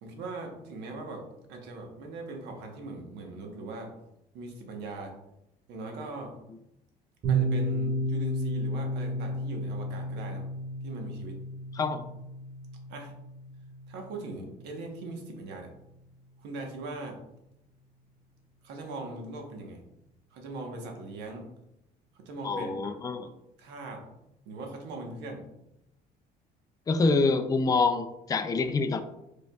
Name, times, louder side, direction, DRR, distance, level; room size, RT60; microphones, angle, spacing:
voice 1, 0.0-1.2 1.5-3.9 4.3-5.1 5.7-6.3 7.3-10.5 10.8-11.4 11.9-12.0 12.9-13.2 13.9-15.7 16.4-17.2 18.6-19.8 20.3-21.5 22.1-22.9 23.6-24.0 24.5-25.4, right 2 dB, 85° right, 2 dB, 1.1 m, -40 dB
Piano, 7.2-14.7, right 1 dB, 50° right, 1.7 m, -32 dB
voice 2, 22.4-23.3 26.9-29.0, left 3 dB, 20° left, 7 dB, 0.4 m, -26 dB
4.8 x 4.6 x 2.3 m, 0.85 s
cardioid pair, 110°, 17 cm